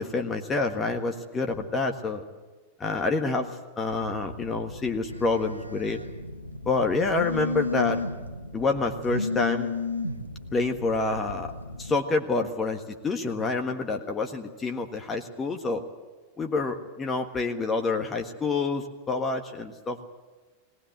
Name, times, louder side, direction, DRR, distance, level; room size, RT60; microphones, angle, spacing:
voice 1, 0.0-2.2 2.8-3.5 3.8-6.0 6.6-8.0 8.5-9.7 10.5-11.5 11.8-15.8 16.4-20.0, left 3 dB, 20° left, 4 dB, 1.6 m, -27 dB
Telephone, 3.9-12.0, left 3 dB, 90° left, 1.0 m, -34 dB
19.5 x 18.5 x 7.9 m, 1.2 s
figure-of-eight pair, 90°, 0 cm